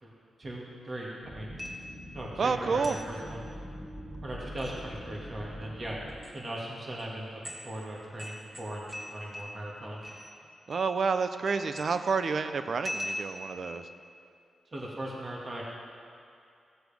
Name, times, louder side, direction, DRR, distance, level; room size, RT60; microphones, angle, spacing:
voice 1, 0.0-1.5 2.1-3.5 4.2-6.0 6.3-10.0 14.7-15.6, right 1 dB, 45° right, -3 dB, 2.1 m, -39 dB
sound 1, 1.2-6.2, equal, 15° left, 2.1 m, -44 dB
sound 2, 1.6-2.1 2.8-3.1 4.4-4.8 6.1-6.3 7.0-7.1 7.4-7.7 8.2-9.7 10.0-10.4 10.7-11.2 11.5-12.1 12.8-13.6, equal, 25° right, 2.1 m, -41 dB
voice 2, 2.4-3.0 10.7-13.9, right 5 dB, 60° right, 10 dB, 0.6 m, -29 dB
15.5 x 7.8 x 3.5 m, 2.5 s
cardioid pair, 55°, 0 cm